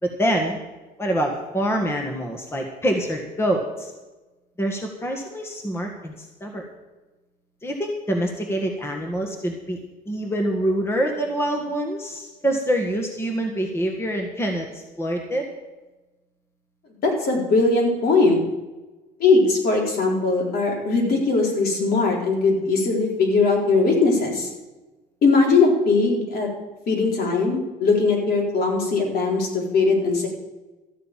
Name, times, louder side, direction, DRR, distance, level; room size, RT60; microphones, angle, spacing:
voice 1, 0.0-0.6 1.0-3.9 4.6-6.6 7.6-9.8 10.1-15.5, right 1 dB, 15° left, 2 dB, 1.7 m, -25 dB
voice 2, 17.0-18.4 19.2-24.5 25.2-26.5 26.9-30.3, left 3 dB, 65° left, -1 dB, 3.9 m, -20 dB
13.5 x 6.7 x 9.0 m, 1.1 s
cardioid pair, 110°, 17 cm